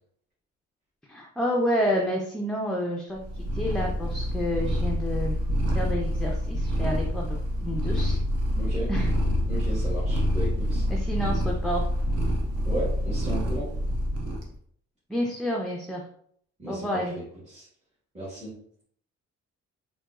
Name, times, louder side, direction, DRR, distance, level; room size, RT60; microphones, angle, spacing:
voice 1, 1.1-3.2 3.5-5.4 5.7-8.2 8.9-9.1 10.9-11.9 15.1-16.0 16.7-17.1, equal, ahead, -1 dB, 0.4 m, -29 dB
Purr, 3.2-14.5, equal, 55° right, 1.0 m, -27 dB
voice 2, 8.5-8.9 9.5-10.8 12.6-13.7 16.6-17.7 18.1-18.5, right 1 dB, 25° right, -9 dB, 1.3 m, -35 dB
3.9 x 2.2 x 2.4 m, 0.62 s
cardioid pair, 90°, 30 cm